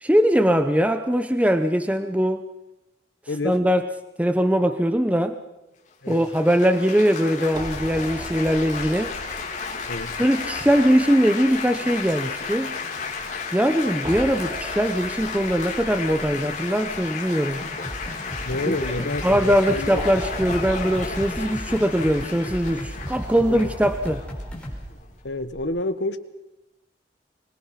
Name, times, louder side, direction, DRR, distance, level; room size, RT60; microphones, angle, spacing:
voice 1, 0.0-2.5 3.4-3.8 4.2-5.4 6.1-9.1 10.2-12.8 13.5-17.6 18.7-18.9 19.2-24.2, equal, 10° right, 9 dB, 0.8 m, -21 dB
voice 2, 3.3-3.6 6.0-6.2 9.9-10.2 18.4-20.1 23.5-23.7 25.2-26.2, left 2 dB, 85° left, 11 dB, 1.4 m, -28 dB
Laughter / Applause / Chatter, 6.1-25.2, left 5 dB, 45° left, 3.3 m, -33 dB
sound 1, 7.5-25.6, equal, 25° right, 1.9 m, -41 dB
sound 2, 17.6-24.9, equal, 5° left, 4.8 m, -35 dB
24.5 x 21.0 x 5.9 m, 0.98 s
head